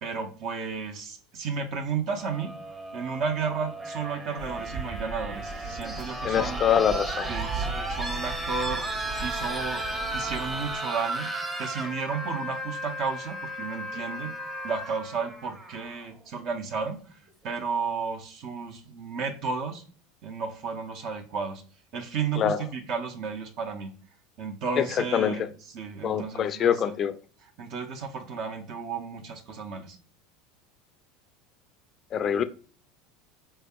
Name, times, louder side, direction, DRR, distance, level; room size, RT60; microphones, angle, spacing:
voice 1, 0.0-2.5 2.9-6.6 7.3-8.8 9.2-11.3 11.6-14.3 14.6-17.0 17.4-19.8 20.2-21.6 21.9-23.9 24.4-26.9 27.6-30.0, right 5 dB, 55° right, 0.7 m, -33 dB
sound 1, 2.1-16.1 17.3-17.4, right 1 dB, 20° right, 0.9 m, -35 dB
sound 2, 4.4-10.8, right 3 dB, 35° right, 1.4 m, -38 dB
voice 2, 6.2-7.3 22.4-22.6 25.1-25.4 26.0-27.2 32.1-32.4, left 8 dB, 40° left, 0.3 m, -24 dB
4.4 x 3.3 x 2.2 m
hypercardioid pair, 80°, 0 cm